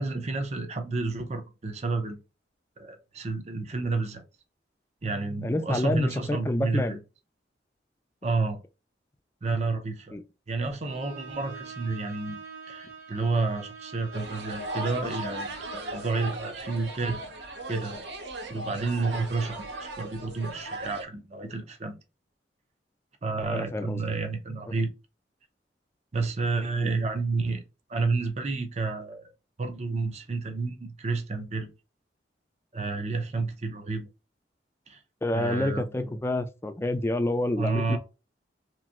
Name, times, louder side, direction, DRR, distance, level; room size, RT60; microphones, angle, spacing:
voice 1, 0.0-2.2 2.8-4.2 5.0-7.0 8.2-8.6 9.4-10.2 10.5-12.4 12.7-17.2 17.7-18.0 18.5-22.0 23.2-24.9 26.1-27.6 27.9-29.3 29.6-31.7 32.7-34.1 34.9-35.0 35.3-36.2 37.6-38.0, right 3 dB, 40° right, 0.6 m, -30 dB
voice 2, 5.4-7.0 10.1-10.2 23.5-24.1 26.8-26.9 35.2-38.0, left 1 dB, 15° left, 0.4 m, -28 dB
Bowed string instrument, 10.8-16.5, right 6 dB, 55° right, 1.3 m, -45 dB
sound 1, 14.1-21.0, right 2 dB, 80° right, 0.8 m, -37 dB
3.0 x 2.5 x 2.4 m
head